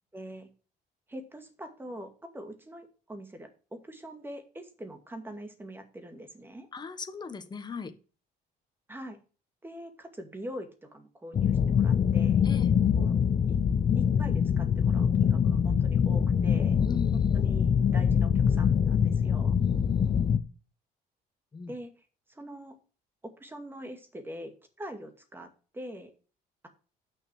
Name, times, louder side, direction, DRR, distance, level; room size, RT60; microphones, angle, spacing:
voice 1, 0.1-0.5 1.1-6.7 8.9-9.2 9.6-12.5 12.9-13.1 13.5-13.6 14.0-16.8 17.1-19.6 21.7-21.9 22.3-22.7 23.2-24.5 24.8-26.1, equal, 10° right, 6 dB, 2.2 m, -43 dB
voice 2, 6.7-7.9 12.4-12.7 16.8-17.5 19.6-20.3 21.5-21.7, left 5 dB, 25° left, 9 dB, 1.4 m, -38 dB
sound 1, 11.3-20.4, left 7 dB, 40° left, 0.8 m, -24 dB
8.6 x 6.5 x 6.1 m, 0.36 s
cardioid pair, 110°, 17 cm